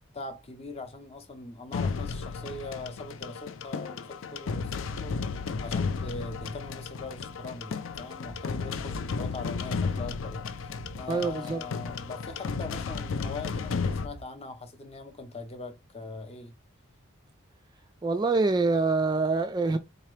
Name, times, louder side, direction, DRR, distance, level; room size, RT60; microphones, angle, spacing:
voice 1, 0.1-16.5, left 3 dB, 30° left, 0.7 m, -41 dB
sound 1, 1.7-14.1, left 5 dB, 65° left, 0.4 m, -33 dB
sound 2, 5.9-14.2, right 1 dB, 80° left, 1.3 m, -49 dB
voice 2, 11.1-11.6 18.0-19.8, right 3 dB, 20° right, 0.3 m, -25 dB
3.8 x 2.8 x 3.2 m
head